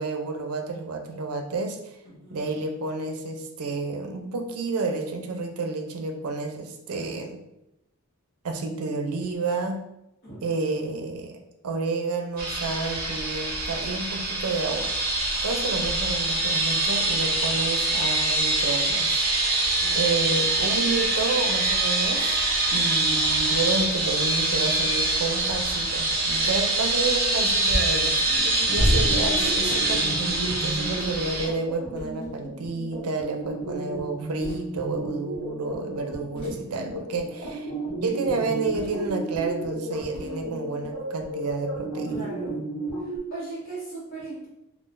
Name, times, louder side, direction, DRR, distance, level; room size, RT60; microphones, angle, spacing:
voice 1, 0.0-2.0 2.3-7.4 8.4-9.9 10.4-14.9 15.4-19.3 19.5-37.7 38.0-42.3, right 3 dB, 85° right, 4 dB, 0.5 m, -30 dB
voice 2, 2.0-2.6 10.2-10.7 19.8-20.3 28.8-29.2 42.1-42.6 43.0-44.5, right 2 dB, 45° left, -10 dB, 1.2 m, -40 dB
sound 1, 12.4-31.5, right 2 dB, 40° right, 0.7 m, -24 dB
sound 2, 25.4-25.8 27.7-28.1 29.1-30.3 31.9-32.5 34.4-34.6 36.3-36.7 38.7-39.1 40.1-40.4, equal, 25° left, 0.9 m, -37 dB
sound 3, 28.2-43.2, right 1 dB, 70° left, 1.1 m, -34 dB
3.7 x 2.4 x 2.5 m, 0.87 s
head